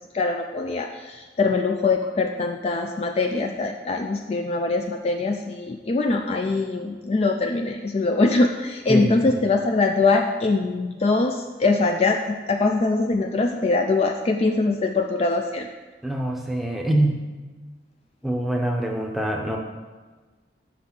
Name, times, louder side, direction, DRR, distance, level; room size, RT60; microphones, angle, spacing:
voice 1, 0.1-15.7, left 3 dB, 35° left, 3 dB, 0.3 m, -23 dB
voice 2, 8.9-9.3 16.0-17.2 18.2-19.6, right 1 dB, ahead, 0 dB, 0.7 m, -24 dB
6.1 x 4.0 x 5.9 m, 1.3 s
head